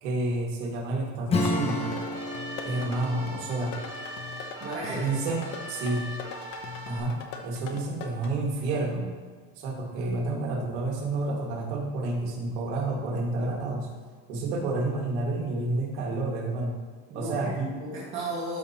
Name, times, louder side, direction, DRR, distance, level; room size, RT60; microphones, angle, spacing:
voice 1, 0.0-2.0 2.6-3.8 4.9-6.1 6.9-9.1 9.6-13.9 14.3-16.8 17.1-17.7, right 2 dB, 80° right, 0 dB, 1.9 m, -30 dB
Acoustic guitar / Strum, 1.3-5.6, left 2 dB, 20° left, 0.6 m, -33 dB
sound 1, 1.4-8.3, left 5 dB, 55° left, 0.9 m, -41 dB
sound 2, 1.4-7.0, equal, 10° right, 2.5 m, -41 dB
voice 2, 4.6-5.1 17.1-18.6, right 2 dB, 35° right, -8 dB, 1.7 m, -34 dB
12.5 x 5.2 x 2.9 m, 1.5 s
cardioid pair, 155°, 33 cm